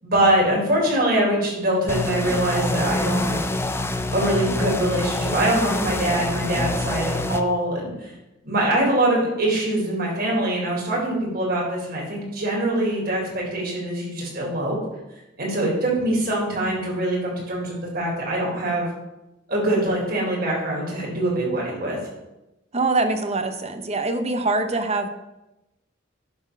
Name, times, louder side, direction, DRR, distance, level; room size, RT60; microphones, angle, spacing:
voice 1, 0.0-3.5 4.1-8.1 8.4-14.8 15.4-18.9 19.5-22.0, right 1 dB, 55° right, -3 dB, 3.7 m, -23 dB
sound 1, 1.9-7.4, left 2 dB, 15° left, 0.5 m, -26 dB
voice 2, 22.7-25.1, right 3 dB, 35° right, 7 dB, 0.9 m, -23 dB
10.5 x 4.3 x 6.2 m, 0.97 s
head